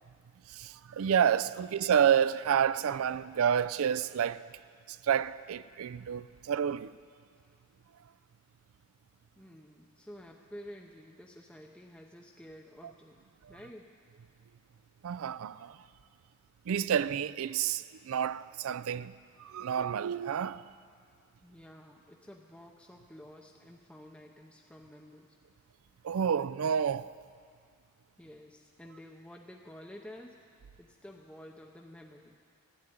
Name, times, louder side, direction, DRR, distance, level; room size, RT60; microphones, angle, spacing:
voice 1, 0.5-4.5 4.9-6.9 13.4-13.5 15.0-15.8 16.7-19.1 19.4-20.6 26.0-27.1, right 8 dB, 70° right, 0.4 m, -29 dB
voice 2, 9.4-13.2 13.5-13.9 21.4-25.4 28.2-32.4, equal, 5° left, 0.6 m, -51 dB
13.0 x 8.9 x 9.3 m
head